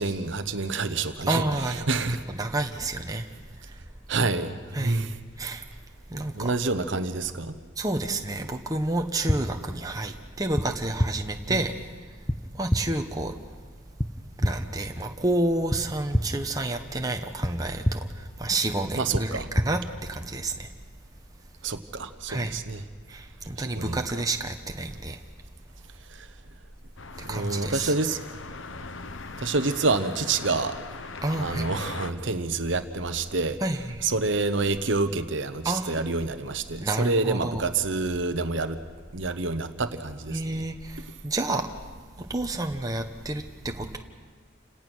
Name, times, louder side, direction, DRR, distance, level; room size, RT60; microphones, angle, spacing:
voice 1, 0.0-2.2 4.1-5.1 6.3-7.6 11.5-11.6 18.9-19.5 21.6-22.8 23.8-24.0 26.1-26.3 27.2-28.2 29.4-30.8 31.4-33.6 34.0-38.8 39.1-40.4, right 3 dB, 60° right, 9 dB, 1.0 m, -28 dB
voice 2, 1.3-2.0 2.3-3.3 4.7-5.0 5.4-5.6 6.1-6.5 7.8-11.7 12.6-13.3 14.4-18.0 18.4-20.7 22.3-22.6 23.1-25.2 27.3-27.9 31.2-31.7 33.6-34.1 35.6-35.9 36.8-37.6 40.3-41.7 42.3-44.0, right 2 dB, 15° right, 4 dB, 1.0 m, -29 dB
sound 1, 9.3-9.4 10.5-10.7 11.0-11.1 12.3-12.4 12.7-12.8 14.0-14.1 14.4-14.5 15.7-15.8 16.1-16.2 17.4-17.5 17.8-18.0 19.1-19.2 19.6-19.7, equal, 10° left, 0.7 m, -24 dB
sound 2, 27.0-32.1, left 4 dB, 65° left, 0.9 m, -40 dB
29.5 x 18.0 x 6.3 m, 1.5 s
head